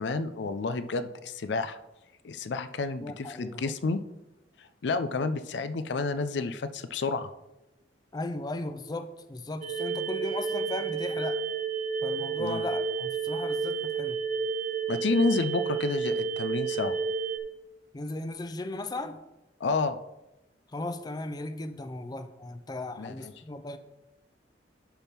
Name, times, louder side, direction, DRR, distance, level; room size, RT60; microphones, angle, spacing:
voice 1, 0.0-1.8 2.2-4.0 4.8-7.3 12.4-12.6 14.9-17.0 19.6-20.0 23.0-23.3, left 3 dB, 75° left, 12 dB, 0.5 m, -30 dB
voice 2, 3.0-3.7 8.1-11.4 12.0-14.2 17.9-19.2 20.7-23.8, left 2 dB, 25° left, 9 dB, 0.5 m, -36 dB
sound 1, 9.6-17.4, right 5 dB, 45° right, 0.9 m, -31 dB
10.5 x 3.5 x 5.7 m, 0.95 s
head